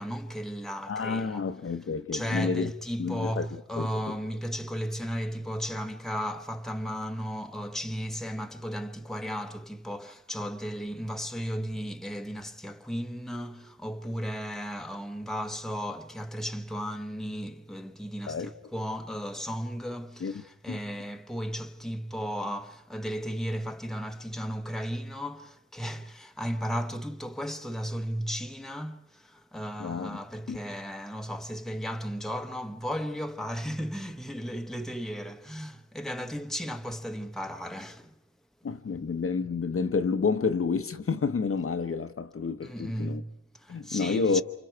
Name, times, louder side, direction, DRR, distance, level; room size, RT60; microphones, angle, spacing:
voice 1, 0.0-1.5 2.1-38.1 42.6-44.4, equal, ahead, 1.0 m, -35 dB
voice 2, 0.9-2.7 3.0-3.5 3.8-3.9 18.3-18.5 20.2-20.3 20.7-20.8 29.8-30.2 30.5-30.6 38.6-43.2 43.7-44.4, left 5 dB, 50° left, 0.9 m, -29 dB
29.0 x 27.0 x 4.6 m
wide cardioid pair, 90°, 29 cm